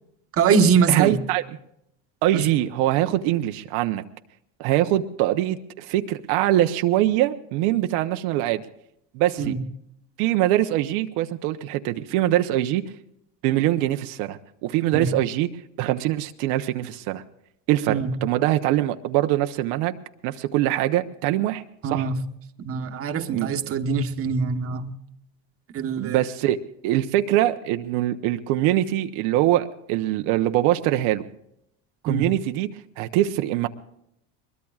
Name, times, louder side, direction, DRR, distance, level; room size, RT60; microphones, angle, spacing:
voice 1, 0.3-1.2 2.3-2.4 9.4-9.6 14.9-15.1 17.9-18.1 21.8-22.2 22.6-24.9 25.7-26.2 32.1-32.2, right 5 dB, 35° right, 5 dB, 1.2 m, -23 dB
voice 2, 0.9-1.4 2.2-4.0 4.6-8.7 9.1-9.5 10.2-12.8 13.4-15.5 15.8-17.2 17.7-20.0 20.2-21.6 21.9-22.1 23.3-23.8 26.0-26.6 26.8-31.2 32.0-32.7 33.0-33.7, right 14 dB, 80° right, 7 dB, 0.9 m, -23 dB
22.0 x 21.0 x 2.4 m, 0.75 s
cardioid pair, 145°, 38 cm